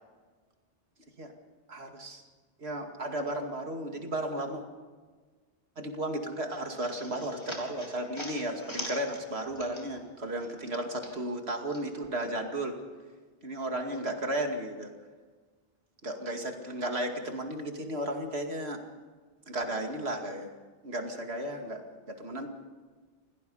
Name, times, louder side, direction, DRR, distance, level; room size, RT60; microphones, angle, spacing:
voice 1, 1.7-2.2 2.6-4.6 5.8-12.7 13.4-14.9 16.0-18.8 19.5-20.5 20.8-22.5, right 1 dB, 85° right, 3 dB, 2.6 m, -34 dB
sound 1, 6.5-10.1 10.4-11.8, equal, 25° left, 3.8 m, -43 dB
27.5 x 18.0 x 5.6 m, 1.4 s
omnidirectional pair, 1.0 m